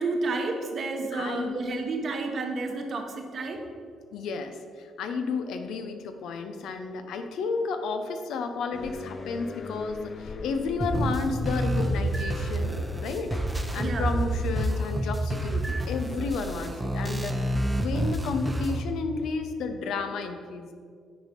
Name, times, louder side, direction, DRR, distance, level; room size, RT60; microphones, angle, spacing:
voice 1, 0.0-3.6 13.8-14.1, right 3 dB, 50° right, 3 dB, 1.1 m, -30 dB
voice 2, 1.1-1.8 4.1-12.8 13.0-13.4 13.7-17.3 17.8-20.7, left 4 dB, 80° left, 7 dB, 0.7 m, -32 dB
sound 1, 8.7-14.1, left 4 dB, 40° left, 0.4 m, -40 dB
sound 2, 10.8-18.8, right 1 dB, 10° right, 0.7 m, -28 dB
9.2 x 4.2 x 5.2 m, 2.1 s
cardioid pair, 90°, 0 cm